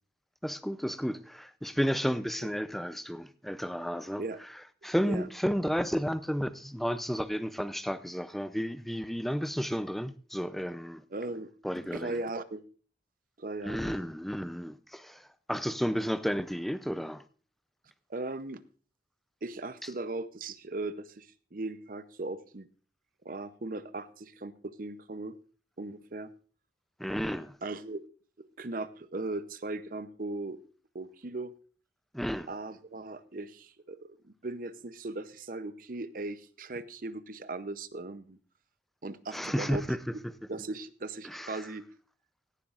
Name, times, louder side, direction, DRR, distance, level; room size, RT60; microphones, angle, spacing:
voice 1, 0.4-4.2 4.8-11.0 11.6-12.2 13.6-17.2 27.0-27.5 32.1-32.5 39.3-40.3 41.2-41.7, equal, ahead, 0.5 m, -32 dB
voice 2, 11.1-11.5 11.9-12.6 13.4-14.0 18.1-18.6 19.4-22.7 23.2-25.3 25.8-26.3 27.6-28.0 28.4-30.6 30.9-31.5 32.5-38.4 39.0-39.8 40.1-40.2 40.5-41.8, right 2 dB, 50° right, 0.7 m, -38 dB
17.0 x 11.0 x 2.5 m
head